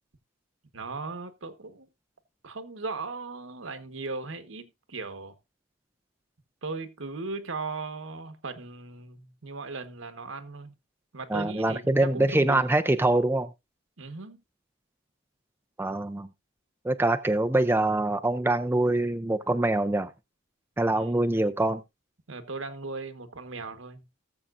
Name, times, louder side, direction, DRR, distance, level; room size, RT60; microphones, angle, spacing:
voice 1, 0.7-1.9 2.4-5.4 6.6-10.7 11.1-12.7 14.0-14.4 20.9-21.2 22.3-24.1, right 3 dB, 75° right, 1.3 m, -38 dB
voice 2, 11.3-13.5 15.8-16.3 16.8-20.1 20.8-21.8, right 2 dB, 10° right, 0.4 m, -24 dB
18.0 x 7.3 x 2.5 m
head